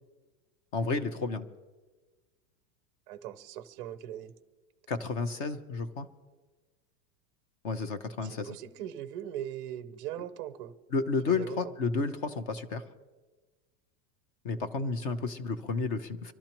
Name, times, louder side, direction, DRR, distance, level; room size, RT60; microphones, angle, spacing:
voice 1, 0.7-1.5 4.9-6.1 7.6-8.6 10.9-12.8 14.4-16.3, left 4 dB, 30° left, 11 dB, 0.7 m, -31 dB
voice 2, 3.1-4.3 8.2-10.7 11.3-11.7, right 11 dB, 30° right, 11 dB, 0.5 m, -40 dB
25.0 x 13.5 x 3.0 m, 1.3 s
supercardioid pair, 180°, 49 cm